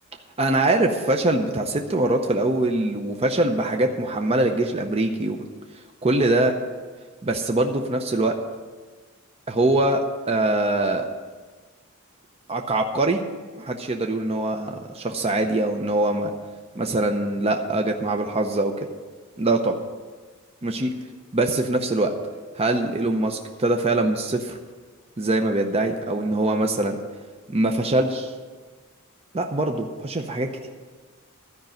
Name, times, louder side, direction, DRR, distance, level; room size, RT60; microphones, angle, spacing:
voice 1, 0.4-5.4 6.0-6.5 7.2-8.3 9.5-11.1 12.5-13.2 13.5-16.3 16.7-18.7 19.4-19.7 20.6-20.9 21.3-22.1 22.6-24.6 25.2-27.0 27.5-28.3 29.3-30.7, right 2 dB, 30° right, 4 dB, 0.6 m, -23 dB
13.0 x 5.4 x 8.9 m, 1.4 s
head